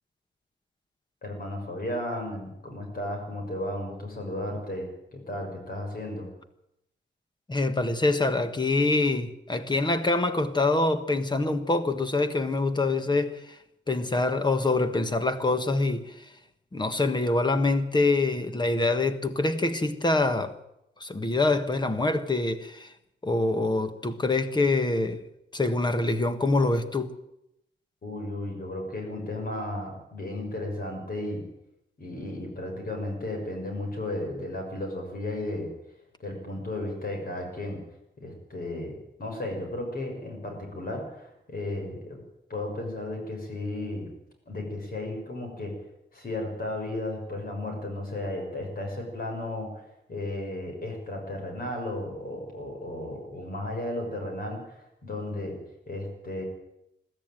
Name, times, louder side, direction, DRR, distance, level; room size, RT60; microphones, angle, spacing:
voice 1, 1.2-6.3 28.0-31.4 32.0-35.7 36.2-37.8 38.2-42.2 42.5-44.1 44.5-45.8 46.1-55.6 55.9-56.4, left 1 dB, 50° left, 6.3 m, -34 dB
voice 2, 7.5-13.6 13.9-16.2 16.7-20.6 21.0-22.9 23.2-25.2 25.5-27.1, left 2 dB, 25° left, 1.5 m, -25 dB
22.0 x 13.5 x 9.1 m
wide cardioid pair, 180°, 19 cm